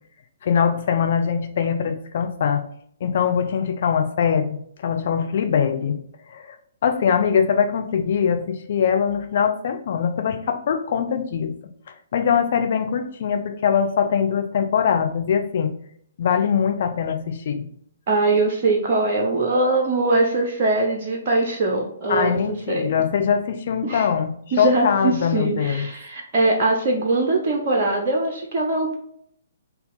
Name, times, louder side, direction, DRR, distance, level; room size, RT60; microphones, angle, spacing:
voice 1, 0.4-2.6 3.0-6.0 6.3-6.6 6.8-11.5 12.1-15.7 16.2-17.6 22.1-25.9, left 7 dB, 45° left, 5 dB, 0.6 m, -22 dB
voice 2, 18.1-22.3 22.7-22.9 23.8-24.1 24.5-28.9, right 2 dB, 35° right, -1 dB, 0.8 m, -21 dB
4.2 x 2.7 x 3.9 m, 0.67 s
figure-of-eight pair, 125°, 0 cm